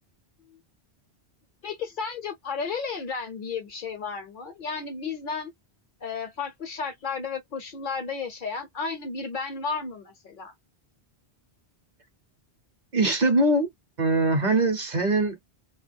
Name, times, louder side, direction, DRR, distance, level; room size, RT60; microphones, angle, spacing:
voice 1, 1.6-5.5 6.0-10.5, left 5 dB, 60° left, 0.6 m, -33 dB
voice 2, 12.9-13.7 14.0-15.4, right 2 dB, 50° right, 0.7 m, -22 dB
2.2 x 2.1 x 3.3 m
omnidirectional pair, 1.1 m